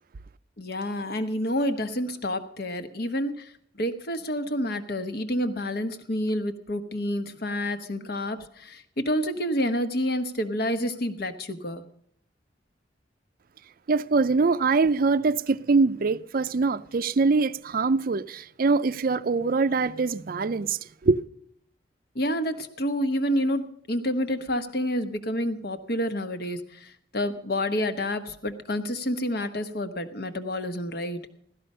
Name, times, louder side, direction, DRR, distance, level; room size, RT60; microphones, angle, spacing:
voice 1, 0.6-11.8 22.1-31.2, equal, 60° left, 1.2 m, -29 dB
voice 2, 13.9-21.2, right 4 dB, 55° right, 0.5 m, -23 dB
16.0 x 13.0 x 5.5 m
head